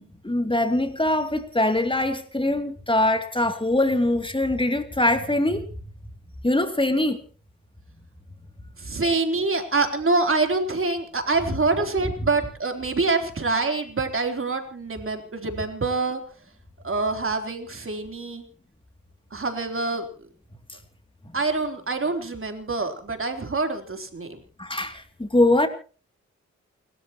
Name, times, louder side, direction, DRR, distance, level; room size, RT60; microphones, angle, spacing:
voice 1, 0.0-5.6 6.4-7.2 24.6-25.7, left 1 dB, 15° left, 2.8 m, -23 dB
voice 2, 8.8-16.2 16.8-18.4 19.3-20.1 21.3-24.4, right 3 dB, 45° right, 3.6 m, -25 dB
29.0 x 13.5 x 3.0 m
cardioid pair, 50°, 29 cm